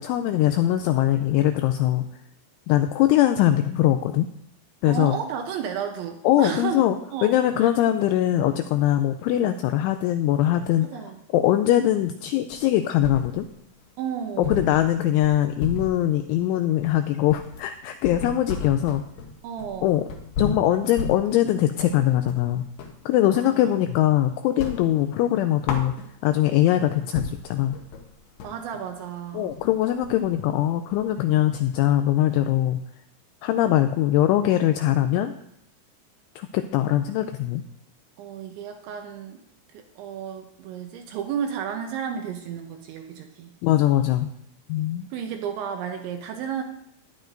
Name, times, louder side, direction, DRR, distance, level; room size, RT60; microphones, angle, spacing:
voice 1, 0.0-2.1 2.7-4.3 4.8-5.2 6.2-7.0 7.2-10.9 11.3-13.5 14.4-19.0 19.8-20.1 20.4-22.6 23.1-25.9 26.2-27.8 29.3-32.8 33.4-35.4 36.4-37.6 43.6-44.3 44.7-45.1, left 13 dB, 90° left, 8 dB, 2.7 m, -22 dB
voice 2, 4.9-7.4 7.6-7.7 10.8-11.2 14.0-14.8 19.4-19.9 23.3-23.6 28.4-29.6 38.2-39.4 39.7-43.5 44.8-46.6, right 8 dB, 80° right, 4 dB, 2.8 m, -33 dB
sound 1, 12.5-13.7 14.0-14.1 14.4-23.0 23.4-24.2 24.4-26.5 26.9-27.0 27.2-31.3, left 4 dB, 70° left, 3.2 m, -34 dB
17.0 x 11.0 x 2.6 m, 0.75 s
omnidirectional pair, 5.9 m